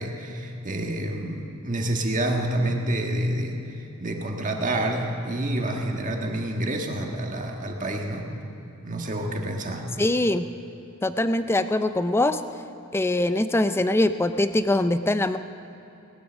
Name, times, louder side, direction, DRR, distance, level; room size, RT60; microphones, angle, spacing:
voice 1, 0.0-8.3 8.8-9.9, right 1 dB, 35° right, 1 dB, 1.6 m, -28 dB
voice 2, 10.0-10.5 11.0-12.4 12.9-15.4, left 1 dB, 10° left, 11 dB, 0.4 m, -22 dB
19.0 x 11.0 x 6.3 m, 2.9 s
head